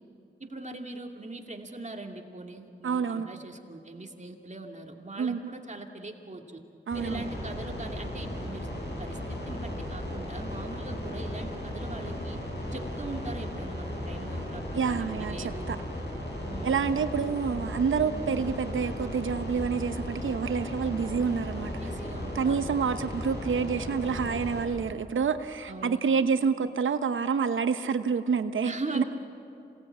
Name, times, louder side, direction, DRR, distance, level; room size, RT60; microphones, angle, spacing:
voice 1, 0.4-6.6 6.9-8.7 9.0-12.4 12.7-15.7 16.4-16.9 21.8-22.8 25.7-26.0 28.6-29.0, right 2 dB, 35° right, 3 dB, 2.4 m, -41 dB
voice 2, 2.8-3.3 5.2-5.4 6.9-7.2 14.7-15.4 15.7-15.8 16.6-21.7 22.3-29.0, right 6 dB, 90° right, 10 dB, 0.9 m, -28 dB
sound 1, 6.9-24.6, left 1 dB, 60° left, 7.4 m, -36 dB
26.5 x 18.5 x 8.6 m, 2.7 s
cardioid pair, 45°, 20 cm